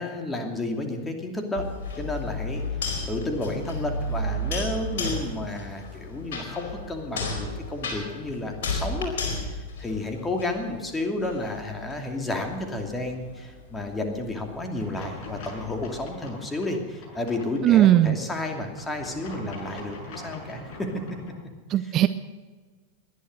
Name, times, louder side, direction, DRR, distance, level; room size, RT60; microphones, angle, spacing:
voice 1, 0.0-1.7 2.0-2.6 3.1-9.1 9.5-20.9, left 2 dB, 15° left, 3 dB, 2.7 m, -31 dB
sound 1, 1.6-10.7 11.2-16.1, left 2 dB, 55° left, 4.5 m, -33 dB
sound 2, 14.7-21.3, left 2 dB, 40° left, 6.6 m, -42 dB
voice 2, 17.6-18.2 21.7-22.1, right 12 dB, 35° right, 13 dB, 0.5 m, -18 dB
19.5 x 11.5 x 6.6 m, 1.4 s
figure-of-eight pair, 90°, 0 cm